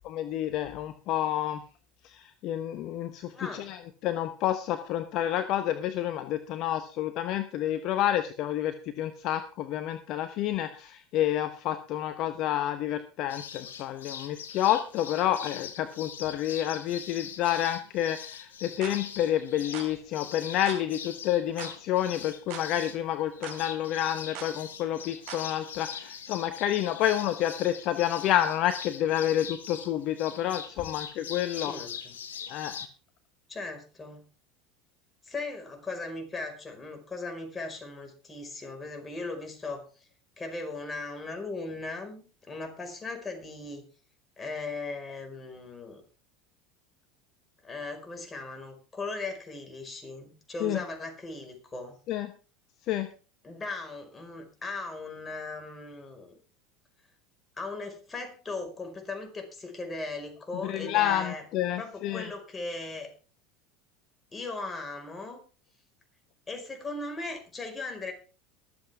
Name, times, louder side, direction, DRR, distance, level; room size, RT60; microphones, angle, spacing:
voice 1, 0.1-1.6 2.0-3.8 4.0-31.7 32.5-32.7 50.6-50.8 52.1-52.3 52.9-53.1 60.6-62.3, left 11 dB, 55° left, 10 dB, 1.0 m, -29 dB
voice 2, 3.3-3.7 31.6-32.1 33.5-34.2 35.2-40.0 40.4-43.8 44.4-46.0 47.6-52.0 53.4-56.4 57.6-61.4 61.8-63.1 64.3-65.4 66.5-68.1, left 3 dB, 20° left, 4 dB, 5.1 m, -38 dB
sound 1, 13.3-32.9, left 7 dB, 85° left, 1.3 m, -42 dB
sound 2, 18.8-19.0 19.7-19.9 20.7-20.8 21.6-21.8 22.5-22.7 23.4-23.6 24.4-24.5 25.3-25.5, right 10 dB, 65° right, 3.5 m, -40 dB
23.5 x 8.1 x 3.6 m, 0.36 s
hypercardioid pair, 85°, 0 cm